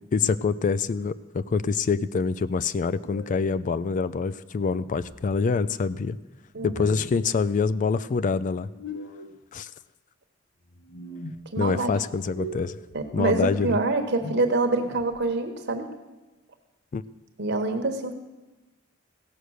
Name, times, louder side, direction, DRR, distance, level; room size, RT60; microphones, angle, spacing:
voice 1, 0.1-6.2 6.6-8.7 9.5-9.7 11.6-12.8 13.1-13.8 16.9-17.0, left 5 dB, 40° left, 15 dB, 0.3 m, -25 dB
sound 1, 2.9-3.6 4.6-5.2 6.6-7.3 8.6-9.4 10.6-11.4 12.2-13.0 14.0-15.2, equal, 70° left, 1.1 m, -41 dB
voice 2, 6.5-7.0 11.5-11.9 12.9-15.9 17.4-18.1, right 2 dB, 60° right, 6 dB, 1.2 m, -26 dB
16.5 x 6.7 x 6.4 m, 1.1 s
head